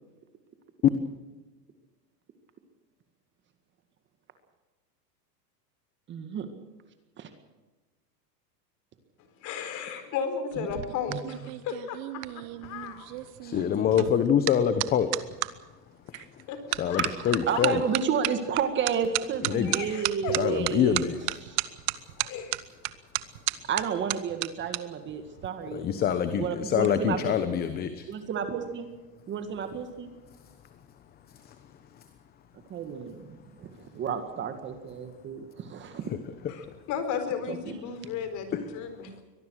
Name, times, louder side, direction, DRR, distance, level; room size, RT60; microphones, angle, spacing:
voice 1, 6.1-6.5 7.2-7.3 10.6-10.7 11.1-11.5 16.9-21.0 21.4-21.6 23.7-26.1 26.3-27.6 28.1-28.9 29.3-30.1 32.7-33.7 33.9-36.1 37.5-37.8, right 7 dB, 20° right, 8 dB, 1.9 m, -32 dB
voice 2, 9.4-13.1 16.2-16.6 16.9-17.1 17.5-17.6 19.6-20.6 22.2-22.6 36.5-39.2, left 7 dB, 35° left, 9 dB, 4.3 m, -34 dB
sound 1, 10.5-15.5 16.1-16.4 16.7-24.8 25.1-25.5, right 20 dB, 40° right, 1.1 m, -33 dB
voice 3, 13.4-15.1 16.8-17.8 19.4-19.8 20.4-21.2 25.7-28.0, left 8 dB, 20° left, 10 dB, 1.0 m, -25 dB
24.0 x 19.0 x 6.4 m, 1.2 s
supercardioid pair, 160°, 49 cm